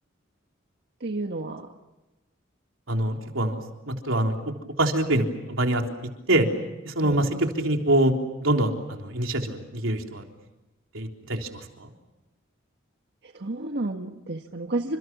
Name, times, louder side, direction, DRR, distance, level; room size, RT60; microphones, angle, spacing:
voice 1, 1.0-1.7 7.0-7.2 13.2-15.0, right 2 dB, 60° right, 4 dB, 1.6 m, -31 dB
voice 2, 2.9-3.6 3.9-4.3 4.8-5.8 6.3-6.5 6.8-7.3 7.6-10.3 10.9-11.9, right 1 dB, 90° right, 3 dB, 3.6 m, -25 dB
29.5 x 27.0 x 6.1 m, 1.0 s
head